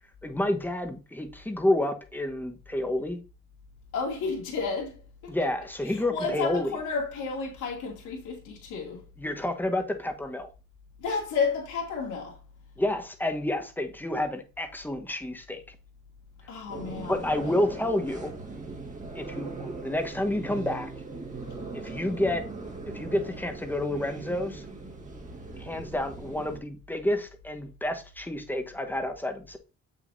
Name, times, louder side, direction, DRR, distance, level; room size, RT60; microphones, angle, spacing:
voice 1, 0.2-3.2 5.3-6.7 9.2-10.5 12.8-15.7 17.1-18.3 19.1-20.9 21.7-22.4 22.9-24.6 25.6-29.6, left 1 dB, 5° left, 1.2 m, -29 dB
voice 2, 3.9-5.3 5.8-9.0 11.0-12.4 16.5-17.3, left 5 dB, 85° left, 2.5 m, -32 dB
sound 1, 16.7-26.6, right 3 dB, 25° right, 1.8 m, -40 dB
7.4 x 6.4 x 2.7 m
cardioid pair, 90°, 30 cm